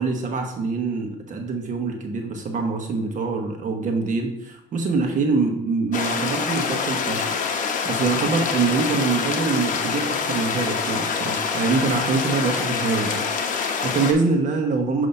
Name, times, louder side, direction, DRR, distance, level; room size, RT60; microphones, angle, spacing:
voice 1, 0.0-7.3 7.8-13.2 13.5-15.1, right 4 dB, 50° right, 4 dB, 1.1 m, -24 dB
sound 1, 5.9-14.1, left 5 dB, 50° left, 0.8 m, -26 dB
6.9 x 2.8 x 5.3 m, 0.77 s
cardioid pair, 110°, 17 cm